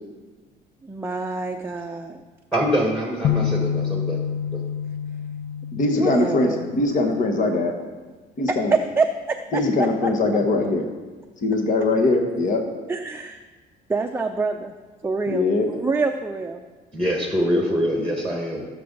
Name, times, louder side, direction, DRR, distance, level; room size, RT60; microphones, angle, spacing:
voice 1, 0.8-2.2 5.9-6.7 8.5-9.6 10.0-10.1 12.9-13.4 13.9-14.7 15.0-16.6, right 4 dB, 15° right, 3 dB, 0.6 m, -26 dB
voice 2, 2.5-4.2 16.9-18.6, equal, 5° left, 0 dB, 1.7 m, -24 dB
sound 1, 3.2-7.3, left 8 dB, 65° left, 0.7 m, -28 dB
voice 3, 5.7-7.7 8.4-8.7 9.5-10.8 11.4-12.6 15.3-15.7, left 2 dB, 50° left, 2 dB, 1.6 m, -21 dB
15.5 x 6.8 x 4.0 m, 1.3 s
cardioid pair, 110°, 17 cm